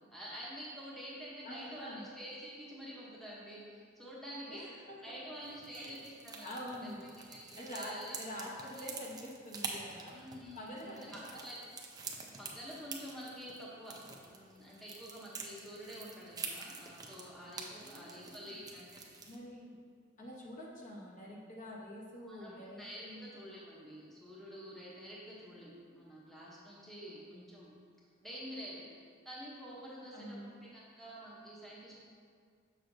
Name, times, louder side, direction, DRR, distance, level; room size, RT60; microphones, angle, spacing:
voice 1, 0.1-4.7 5.0-6.9 7.3-8.9 10.1-11.6 12.4-13.9 14.2-19.0 22.3-27.7 28.2-28.9 29.2-32.0, equal, ahead, -7 dB, 0.8 m, -48 dB
voice 2, 1.4-2.0 4.5-5.3 5.7-6.0 6.4-7.1 7.6-10.1 10.5-11.5 17.8-18.6 19.3-19.9 20.2-23.3 27.3-27.6 30.1-30.5, equal, 40° left, -4 dB, 0.9 m, -46 dB
sound 1, 5.4-19.4, right 4 dB, 20° right, 0.5 m, -47 dB
6.8 x 6.2 x 2.6 m, 2.1 s
head